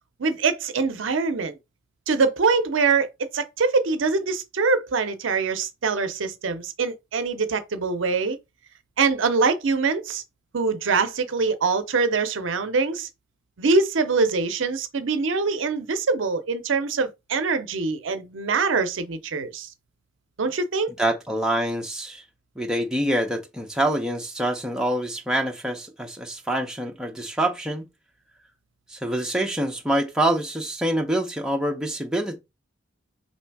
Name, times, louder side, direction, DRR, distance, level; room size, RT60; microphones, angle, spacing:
voice 1, 0.2-1.6 2.1-8.4 9.0-10.2 10.5-13.1 13.6-19.7 20.4-20.9, right 4 dB, 75° right, 0.6 m, -24 dB
voice 2, 21.0-22.2 22.6-27.8 28.9-32.4, right 1 dB, 5° right, 0.8 m, -26 dB
3.4 x 2.7 x 4.6 m
head